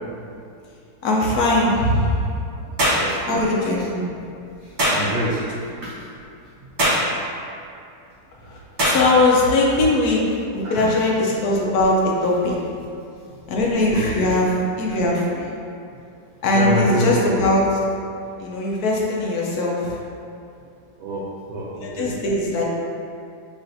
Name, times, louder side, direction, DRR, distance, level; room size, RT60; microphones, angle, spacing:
voice 1, 1.0-2.1 3.3-3.9 8.5-10.2 10.5-12.5 13.5-15.5 16.4-17.8 18.4-20.0 21.7-22.6, left 2 dB, 70° left, -3 dB, 1.1 m, -20 dB
voice 2, 2.6-4.1 4.6-5.4 5.8-6.0 10.6-10.9 13.9-14.3 16.5-17.6 21.0-22.1, equal, 80° right, -5 dB, 0.6 m, -27 dB
sound 1, 2.8-3.1 4.8-5.0 6.8-7.1 8.8-9.0, equal, 45° right, 1.3 m, -19 dB
6.0 x 3.1 x 2.6 m, 2.5 s
omnidirectional pair, 1.8 m